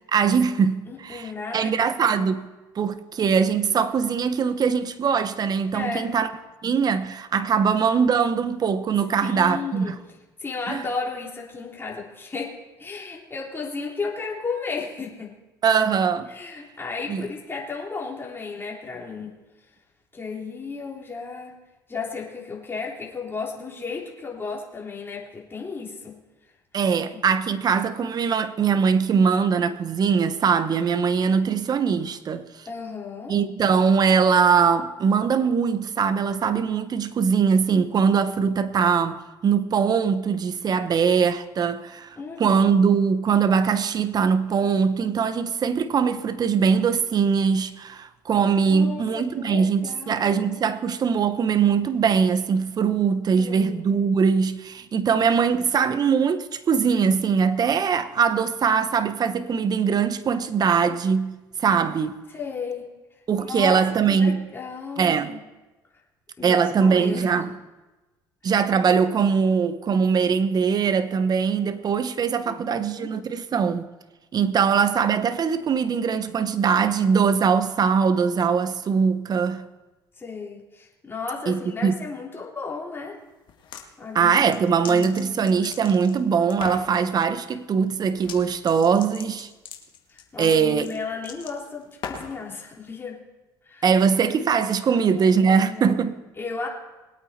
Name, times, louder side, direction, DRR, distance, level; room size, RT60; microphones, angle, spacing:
voice 1, 0.1-2.4 2.7-6.3 6.6-9.9 10.7-10.8 15.6-16.3 17.1-17.3 26.7-32.4 33.3-62.2 63.3-64.4 65.0-65.3 66.4-67.5 68.4-73.9 74.3-79.6 81.5-81.9 84.1-89.5 90.4-90.9 93.8-96.2, right 6 dB, 45° right, 1.1 m, -21 dB
voice 2, 0.9-1.8 2.1-2.3 5.7-6.1 9.2-9.9 10.4-12.5 12.8-15.4 16.3-19.3 20.1-21.6 21.9-26.2 26.8-26.9 32.7-33.3 42.2-42.9 48.7-50.6 53.3-53.8 62.3-62.9 63.4-63.8 64.1-65.4 66.4-67.3 68.4-68.5 72.4-73.1 80.2-83.2 84.0-85.3 90.1-93.2 93.6-93.8 94.9-96.0 96.4-96.7, left 4 dB, 25° left, 3.4 m, -34 dB
sound 1, 83.5-83.9 84.3-86.2 86.5-86.9 88.2-88.4 88.6-92.4, left 7 dB, 55° left, 1.9 m, -38 dB
21.0 x 8.6 x 4.3 m
hypercardioid pair, 65°, 10 cm